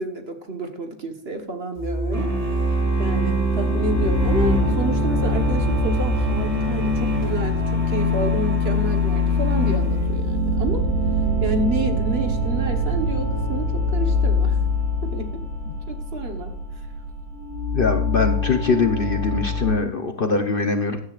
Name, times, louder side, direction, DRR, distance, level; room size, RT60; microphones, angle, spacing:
voice 1, 0.0-10.9 11.4-14.6 15.0-15.4 15.9-16.5, right 2 dB, 45° right, 5 dB, 1.4 m, -30 dB
synth horizons, 1.8-19.7, left 1 dB, 75° right, 3.4 m, -24 dB
sound 1, 2.1-10.4, left 2 dB, 25° right, 1.6 m, -26 dB
voice 2, 17.7-21.0, left 4 dB, 45° left, 6 dB, 0.8 m, -22 dB
15.5 x 10.0 x 2.4 m, 0.73 s
omnidirectional pair, 1.6 m